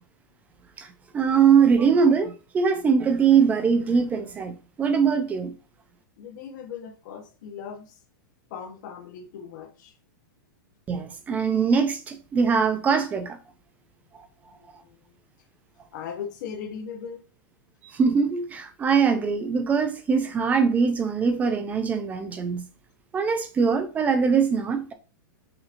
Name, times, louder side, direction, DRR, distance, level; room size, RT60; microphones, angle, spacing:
voice 1, 0.8-5.5 10.9-13.4 17.9-22.6 23.1-24.9, right 6 dB, 15° right, 0.4 m, -22 dB
voice 2, 6.2-8.0 8.5-9.9 14.5-15.0 15.9-17.2, left 7 dB, 55° left, 1.0 m, -38 dB
5.5 x 2.8 x 2.5 m
supercardioid pair, 155°, 12 cm